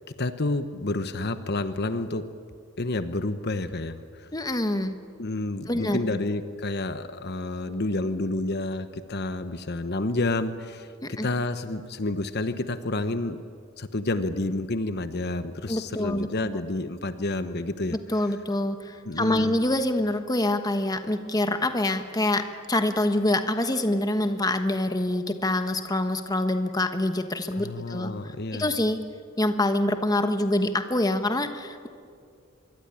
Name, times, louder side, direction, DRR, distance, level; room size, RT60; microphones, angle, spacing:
voice 1, 0.2-2.3 2.8-4.3 5.2-13.4 13.8-18.0 19.0-19.6 27.5-28.7, left 2 dB, 50° left, 10 dB, 1.0 m, -29 dB
voice 2, 4.3-4.9 5.7-6.0 11.0-11.3 15.7-16.3 17.9-29.0 29.4-31.9, left 1 dB, 20° left, 8 dB, 1.3 m, -26 dB
24.5 x 23.0 x 10.0 m, 2.3 s
head